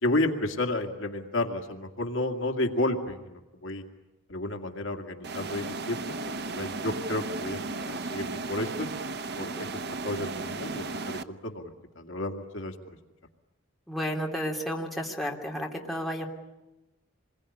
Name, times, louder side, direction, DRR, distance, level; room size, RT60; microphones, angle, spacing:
voice 1, 0.0-3.8 4.3-8.9 9.4-9.7 10.0-11.7 12.0-12.7, left 1 dB, 65° left, 4 dB, 2.2 m, -31 dB
sound 1, 5.2-11.2, right 3 dB, 55° right, 0.9 m, -35 dB
voice 2, 13.9-16.3, equal, ahead, -1 dB, 3.0 m, -32 dB
27.0 x 21.5 x 10.0 m, 1.0 s
head